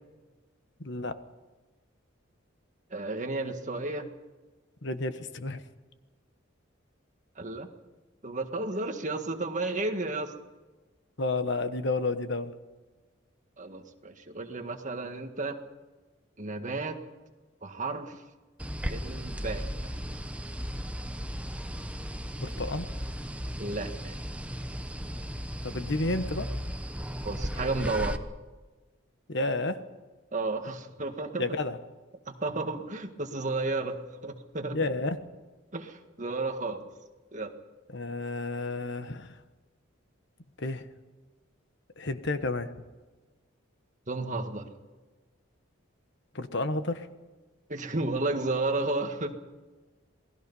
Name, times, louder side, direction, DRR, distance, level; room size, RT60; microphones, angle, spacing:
voice 1, 0.8-1.2 4.8-5.6 11.2-12.5 22.4-22.9 25.6-26.5 29.3-29.8 31.4-31.8 34.7-35.2 37.9-39.3 40.6-40.8 42.0-42.7 46.3-47.1, left 2 dB, 60° left, 10 dB, 1.3 m, -31 dB
voice 2, 2.9-4.1 7.4-7.7 8.2-10.3 13.6-15.6 16.4-17.0 17.6-18.1 18.9-19.9 23.6-24.1 27.2-28.2 30.3-31.4 32.3-34.8 35.7-36.8 37.3-37.5 44.1-44.7 47.7-49.3, right 2 dB, 40° right, 5 dB, 1.8 m, -32 dB
sound 1, 18.6-28.2, equal, 5° right, 0.9 m, -36 dB
28.0 x 19.5 x 5.5 m, 1.3 s
head